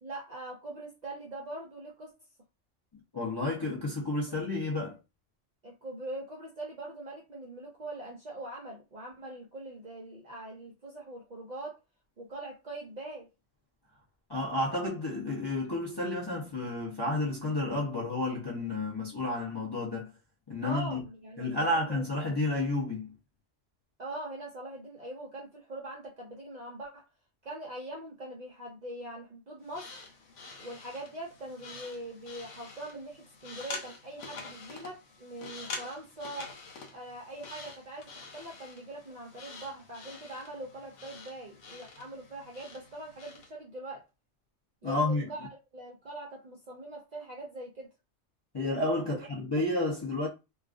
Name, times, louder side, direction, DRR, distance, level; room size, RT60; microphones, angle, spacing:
voice 1, 0.0-2.1 5.6-11.8 12.2-13.3 20.6-22.0 24.0-27.1 27.4-29.9 30.6-36.5 36.9-44.0 44.8-47.9 49.1-49.2 49.6-49.7, right 1 dB, 50° right, 0.5 m, -42 dB
voice 2, 3.1-5.0 14.3-20.1 20.5-21.0 21.4-23.1 44.8-45.3 48.5-50.3, left 2 dB, 30° left, 0.4 m, -31 dB
sound 1, 29.6-43.5, left 4 dB, 90° left, 1.0 m, -46 dB
2.3 x 2.3 x 2.4 m
omnidirectional pair, 1.3 m